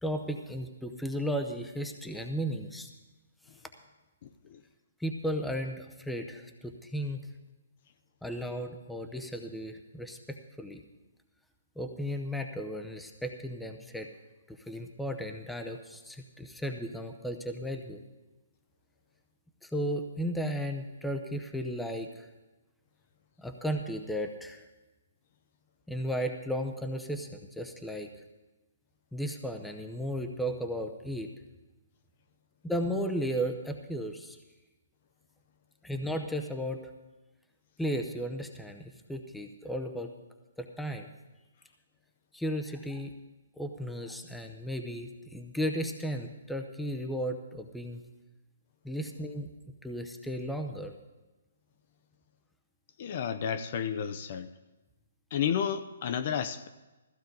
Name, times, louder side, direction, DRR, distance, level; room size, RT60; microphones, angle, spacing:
voice 1, 0.0-2.9 5.0-7.2 8.2-10.8 11.8-14.1 14.5-18.0 19.6-22.3 23.4-24.6 25.9-28.1 29.1-31.3 32.6-34.4 35.8-36.8 37.8-40.1 40.6-41.1 42.3-43.1 43.6-48.0 48.8-49.5 49.8-50.9, equal, ahead, 5 dB, 0.7 m, -35 dB
voice 2, 4.2-4.6 53.0-54.5 55.3-56.7, left 8 dB, 40° left, 11 dB, 0.7 m, -32 dB
15.5 x 15.0 x 3.9 m, 1.1 s
hypercardioid pair, 165°, 0 cm